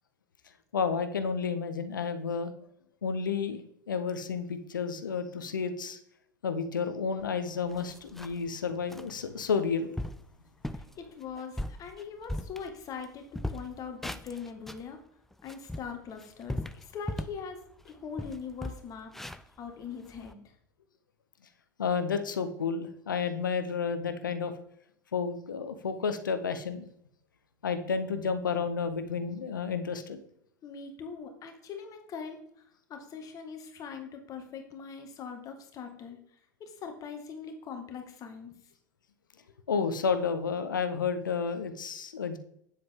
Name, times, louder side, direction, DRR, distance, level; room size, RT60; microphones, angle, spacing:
voice 1, 0.7-2.5 3.0-6.0 6.4-9.9 21.8-24.5 25.1-26.9 27.6-30.2 39.7-42.4, left 5 dB, 75° left, 10 dB, 0.9 m, -31 dB
sound 1, 7.2-7.3 7.7-8.5 8.9-9.1 9.6-9.7 10.0-10.3 10.6-10.9 11.4-13.1 13.3-14.9 15.3-17.5 17.8-17.9 18.2-20.3, left 1 dB, 5° left, 0.5 m, -38 dB
voice 2, 10.7-15.0 15.4-17.6 17.8-20.5 30.6-36.2 36.6-38.5, left 6 dB, 35° left, 5 dB, 1.8 m, -42 dB
9.5 x 7.7 x 3.6 m, 0.72 s
figure-of-eight pair, 85°, 11 cm